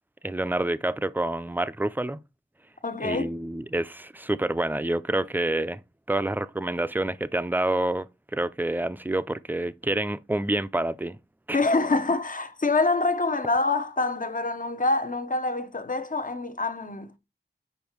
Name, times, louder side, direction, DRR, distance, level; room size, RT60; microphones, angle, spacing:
voice 1, 0.2-2.2 3.0-5.8 6.1-11.2 11.5-11.6, right 1 dB, 10° right, 0.5 m, -28 dB
voice 2, 2.8-3.3 11.5-17.2, left 3 dB, 45° left, 0.9 m, -26 dB
5.5 x 5.3 x 4.5 m
wide cardioid pair, 55°, 19 cm